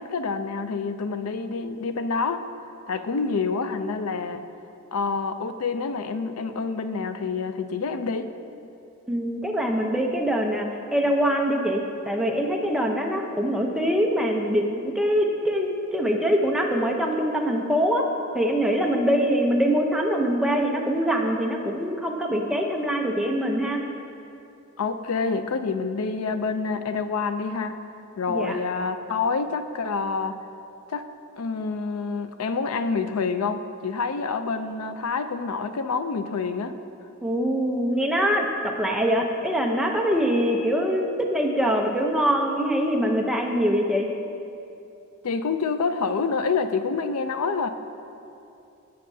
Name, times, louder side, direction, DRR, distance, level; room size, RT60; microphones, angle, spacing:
voice 1, 0.0-2.4 2.9-4.4 4.9-8.3 24.8-27.7 28.2-30.4 30.9-31.1 31.4-36.8 45.2-47.7, left 4 dB, 80° left, 9 dB, 0.5 m, -27 dB
voice 2, 9.1-18.0 18.3-23.8 28.3-28.6 37.2-44.1, equal, 5° right, 0 dB, 0.7 m, -24 dB
16.5 x 6.7 x 2.7 m, 2.7 s
head